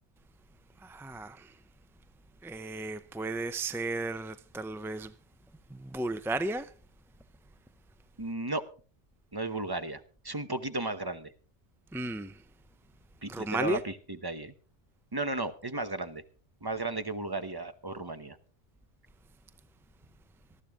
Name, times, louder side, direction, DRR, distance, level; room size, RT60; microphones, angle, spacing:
voice 1, 0.8-1.5 2.4-5.1 5.8-6.7 11.9-12.3 13.3-13.8, right 2 dB, 5° right, 0.3 m, -34 dB
voice 2, 8.2-8.6 9.3-11.3 13.2-14.5 15.1-16.2 16.6-18.4, right 2 dB, 20° right, 0.9 m, -34 dB
19.0 x 13.5 x 3.6 m
omnidirectional pair, 1.2 m